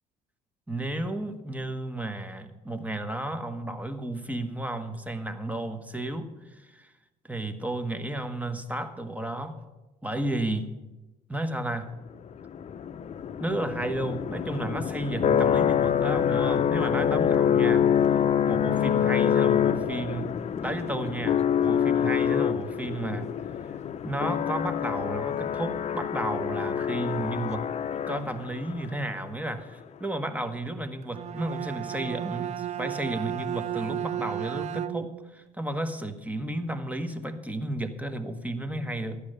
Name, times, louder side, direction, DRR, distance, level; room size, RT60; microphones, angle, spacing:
voice 1, 0.7-6.9 7.3-9.6 10.0-10.8 11.3-11.9 13.4-17.9 18.5-23.3 24.0-27.7 28.1-39.2, right 1 dB, 10° right, 8 dB, 1.2 m, -33 dB
sound 1, 12.4-28.6, left 8 dB, 40° left, 0.6 m, -26 dB
Bowed string instrument, 31.0-35.3, right 11 dB, 40° right, 0.5 m, -33 dB
14.0 x 10.0 x 6.6 m, 1.1 s
cardioid pair, 110°, 17 cm